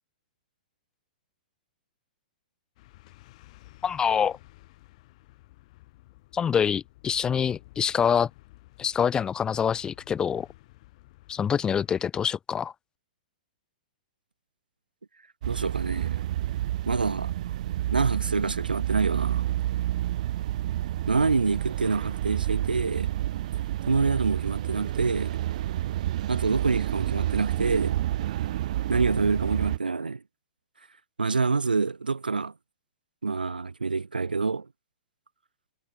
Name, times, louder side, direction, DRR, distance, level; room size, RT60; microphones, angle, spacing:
sound 1, 2.8-12.1, left 19 dB, 50° left, 5.8 m, -54 dB
voice 1, 3.8-4.4 6.3-8.3 8.8-10.5 11.3-12.7, left 7 dB, 15° left, 0.3 m, -25 dB
sound 2, 15.4-29.8, right 13 dB, 55° right, 0.5 m, -29 dB
voice 2, 15.5-16.2 16.9-17.3 17.9-19.5 21.1-23.1 23.9-25.4 26.3-28.0 28.9-30.2 31.2-32.5 33.2-34.7, right 4 dB, 90° right, 2.5 m, -26 dB
hypercardioid pair, 115°, 5 cm